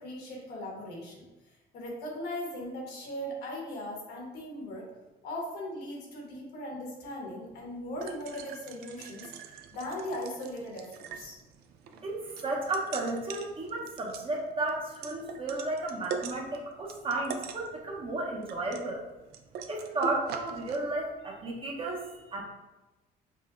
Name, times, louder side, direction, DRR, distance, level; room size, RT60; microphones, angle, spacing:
voice 1, 0.0-4.9 5.2-9.3 9.7-11.4, left 1 dB, 75° left, -2 dB, 1.2 m, -39 dB
sound 1, 7.4-20.8, right 6 dB, 75° right, 0.4 m, -43 dB
voice 2, 12.0-19.0 19.7-22.4, right 2 dB, 30° right, -1 dB, 0.7 m, -33 dB
5.3 x 2.2 x 2.4 m, 1.1 s
cardioid pair, 110°, 17 cm